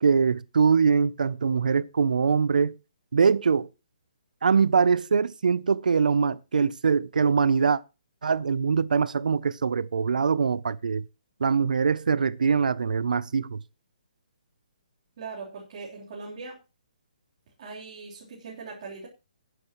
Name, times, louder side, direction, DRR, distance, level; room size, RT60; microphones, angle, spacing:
voice 1, 0.0-2.7 3.1-3.7 4.4-7.8 8.2-11.0 11.4-13.6, right 5 dB, 85° right, 0.6 m, -23 dB
voice 2, 15.2-16.6 17.6-19.1, right 4 dB, 40° right, 3.6 m, -40 dB
19.0 x 9.2 x 3.1 m
hypercardioid pair, 165°, 4 cm